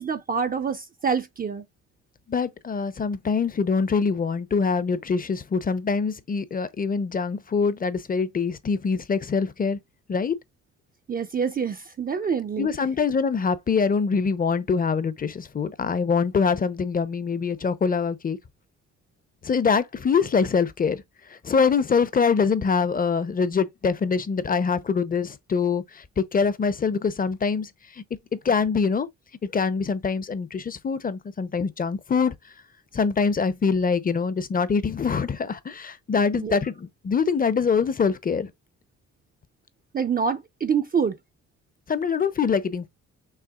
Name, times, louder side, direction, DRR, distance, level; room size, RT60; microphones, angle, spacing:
voice 1, 0.0-1.6 11.1-12.7 36.3-36.6 39.9-41.2, right 6 dB, 30° right, 0.5 m, -26 dB
voice 2, 2.3-9.8 10.1-10.4 12.6-18.4 19.4-21.0 21.3-27.7 28.0-28.1 28.3-29.1 29.4-32.3 32.9-38.5 41.9-42.9, left 5 dB, 30° left, 0.6 m, -24 dB
5.6 x 3.3 x 2.3 m
cardioid pair, 90°, 30 cm